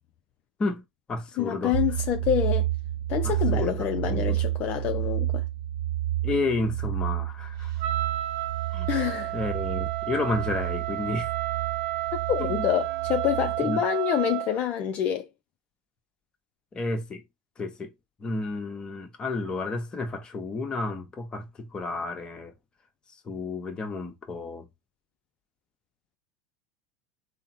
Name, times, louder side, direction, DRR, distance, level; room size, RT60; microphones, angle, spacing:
voice 1, 0.6-1.7 3.2-4.4 6.2-7.7 8.7-8.9 9.3-11.3 12.4-12.7 13.7-13.8 16.7-17.2 17.6-17.9 18.2-22.5 23.3-24.7, left 3 dB, 25° left, 0.9 m, -31 dB
voice 2, 1.4-2.7 3.1-5.4 8.9-9.3 12.3-15.3, left 10 dB, 45° left, 0.4 m, -27 dB
sound 1, 1.7-13.6, right 13 dB, 15° right, 1.2 m, -30 dB
Wind instrument woodwind instrument, 7.8-14.6, right 16 dB, 65° right, 0.5 m, -31 dB
3.4 x 2.0 x 4.1 m
hypercardioid pair, 95°, 4 cm